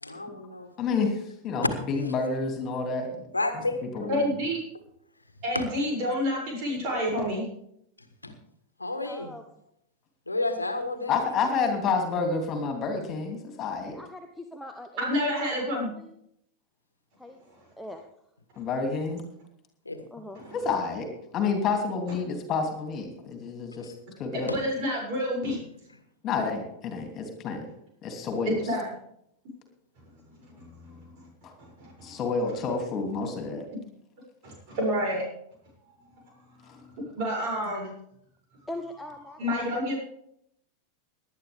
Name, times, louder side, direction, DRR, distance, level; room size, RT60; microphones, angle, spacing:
voice 1, 0.0-0.7 3.3-3.8 5.5-5.6 8.2-8.3 8.8-9.3 10.3-11.1 19.8-20.0 24.5-24.6, left 2 dB, 80° left, 8 dB, 1.5 m, -30 dB
voice 2, 0.8-3.2 3.9-4.3 11.1-14.0 18.6-19.2 20.5-21.0 21.3-23.9 24.2-24.5 26.2-27.6 28.0-28.6 31.4-31.5 32.0-33.7 36.7-36.8, left 4 dB, 30° left, 4 dB, 2.9 m, -29 dB
voice 3, 4.1-4.6 5.4-7.4 15.0-15.9 17.5-17.6 20.3-20.6 24.3-25.6 28.4-28.9 30.4-31.3 31.6-32.2 34.4-35.3 36.7-37.9 39.4-40.0, equal, 45° right, -1 dB, 7.0 m, -29 dB
voice 4, 9.0-9.4 13.9-15.1 15.6-15.7 15.9-16.1 17.2-17.4 17.8-18.0 20.1-20.4 30.5-30.6 38.7-39.4 39.7-40.0, left 1 dB, 5° left, 4 dB, 1.0 m, -41 dB
18.5 x 11.0 x 3.6 m, 0.73 s
figure-of-eight pair, 90°, 0 cm